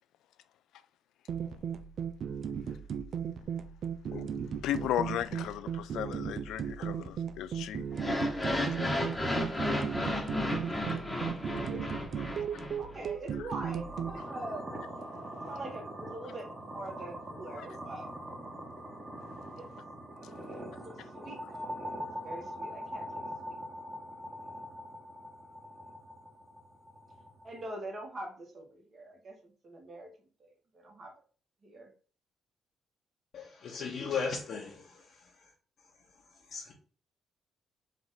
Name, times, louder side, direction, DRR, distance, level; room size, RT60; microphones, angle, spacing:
sound 1, 1.3-14.2, right 7 dB, 60° right, 0.4 m, -36 dB
voice 1, 4.1-7.9 17.6-17.7, left 11 dB, 85° left, 0.3 m, -35 dB
sound 2, 7.9-13.1, left 1 dB, 10° left, 1.1 m, -33 dB
voice 2, 11.6-12.5 12.8-14.7 15.5-18.1 19.6-19.7 20.5-23.1 23.4-23.6 27.4-30.1 30.4-31.1 31.6-31.9, right 1 dB, 45° right, 1.5 m, -44 dB
sound 3, 13.7-27.7, equal, 20° right, 1.4 m, -43 dB
voice 3, 33.3-35.0 36.5-36.7, left 5 dB, 60° left, 1.0 m, -36 dB
4.5 x 2.6 x 4.0 m
cardioid pair, 90°, 0 cm